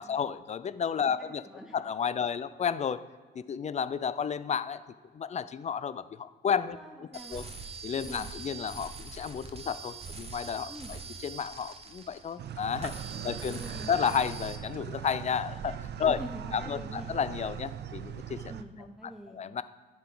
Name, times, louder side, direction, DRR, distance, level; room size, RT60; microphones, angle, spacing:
voice 1, 0.0-1.4 1.7-3.0 3.4-4.8 5.1-7.4 7.8-13.6 13.9-16.2 16.5-18.4 19.3-19.6, left 7 dB, 35° left, 15 dB, 0.4 m, -32 dB
voice 2, 1.0-1.8 6.6-7.5 8.0-8.3 10.7-10.9 13.1-13.9 16.1-17.1 18.5-19.4, equal, ahead, 1 dB, 0.7 m, -46 dB
sound 1, 7.1-12.5 12.8-14.6, right 5 dB, 30° right, 0.9 m, -43 dB
sound 2, 12.4-18.6, right 9 dB, 60° right, 0.5 m, -40 dB
10.0 x 4.8 x 3.9 m, 1.5 s
cardioid pair, 90°, 20 cm